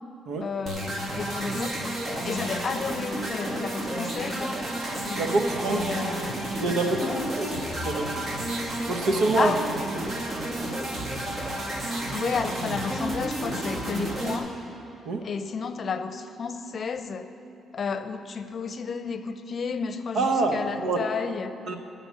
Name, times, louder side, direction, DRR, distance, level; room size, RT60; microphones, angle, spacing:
voice 1, 0.4-4.6 5.0-6.4 7.0-7.2 9.4-9.9 11.8-14.5 15.2-17.3 17.7-21.6, left 5 dB, 50° left, 10 dB, 0.7 m, -32 dB
sound 1, 0.7-14.4, right 1 dB, 40° right, 2.0 m, -31 dB
voice 2, 5.1-6.1 6.6-7.1 7.4-7.5 7.9-8.1 8.9-9.5 9.9-10.1 15.1-15.2 20.1-21.0 21.7-21.8, right 3 dB, 80° right, 4 dB, 1.1 m, -26 dB
15.5 x 6.0 x 8.2 m, 2.7 s
cardioid pair, 90°, 0 cm